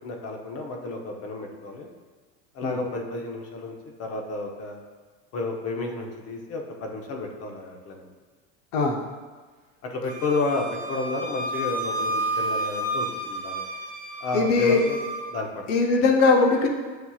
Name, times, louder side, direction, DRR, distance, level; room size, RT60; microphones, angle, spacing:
voice 1, 0.0-1.9 2.5-3.7 4.0-4.8 5.3-8.1 9.8-13.6 14.2-15.0 15.3-15.7, left 3 dB, 40° left, 2 dB, 0.8 m, -31 dB
Wind instrument woodwind instrument, 10.1-15.3, right 1 dB, 25° right, 0.7 m, -31 dB
voice 2, 14.3-14.8 15.7-16.7, left 3 dB, 75° left, 2 dB, 0.8 m, -20 dB
7.8 x 2.8 x 2.4 m, 1.4 s
supercardioid pair, 115°, 37 cm